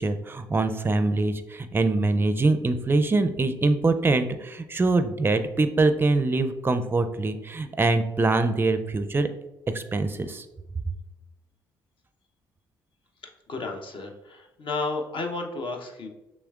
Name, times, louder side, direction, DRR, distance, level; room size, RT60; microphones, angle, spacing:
voice 1, 0.0-9.3 9.7-10.5, right 3 dB, 20° right, 9 dB, 0.5 m, -24 dB
voice 2, 13.2-16.1, left 3 dB, 50° left, 3 dB, 0.8 m, -32 dB
6.1 x 3.2 x 2.4 m, 0.98 s
hypercardioid pair, 45°, 11 cm